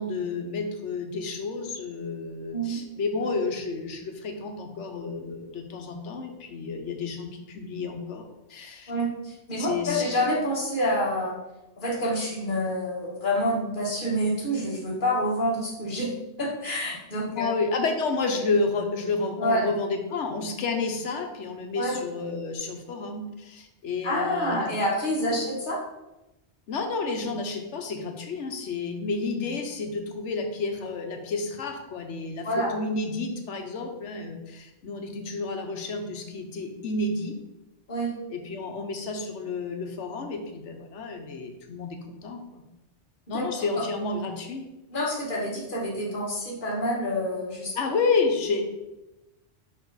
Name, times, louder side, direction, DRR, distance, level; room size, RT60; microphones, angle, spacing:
voice 1, 0.0-8.2 8.5-8.9 9.6-10.3 17.4-24.7 25.3-25.5 26.7-37.3 38.3-42.6 43.3-44.6 47.7-48.6, left 3 dB, 85° left, 5 dB, 1.2 m, -30 dB
voice 2, 8.9-11.4 11.8-16.1 16.4-17.5 19.4-19.6 21.7-22.0 24.0-25.8 32.4-32.7 37.9-38.1 43.3-43.8 44.9-47.7, equal, 45° left, -3 dB, 1.7 m, -27 dB
5.4 x 4.9 x 3.9 m, 0.99 s
omnidirectional pair, 1.2 m